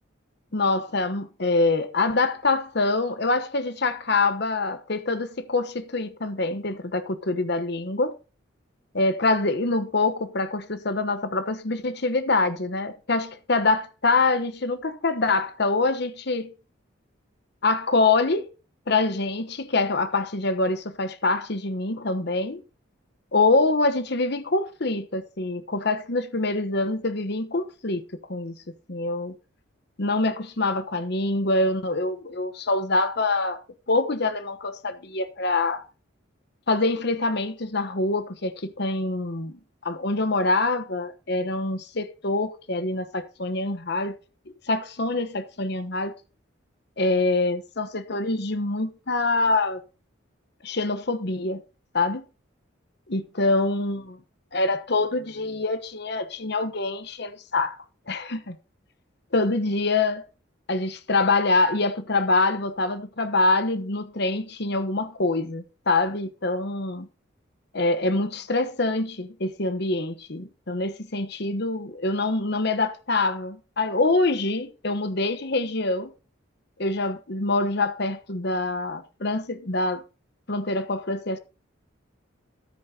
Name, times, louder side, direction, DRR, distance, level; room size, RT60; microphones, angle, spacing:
voice 1, 0.5-8.1 8.9-16.5 17.6-18.5 18.9-22.6 23.3-28.0 28.3-28.6 28.9-29.3 30.0-33.6 33.9-35.8 36.7-39.6 39.8-44.2 44.7-46.1 47.0-49.8 50.6-51.6 51.9-52.2 53.1-54.0 54.5-57.8 58.1-58.6 59.3-60.3 60.7-67.1 67.7-76.1 76.8-80.0 80.5-81.4, left 3 dB, 55° left, 1.1 m, -25 dB
13.5 x 8.7 x 2.9 m
head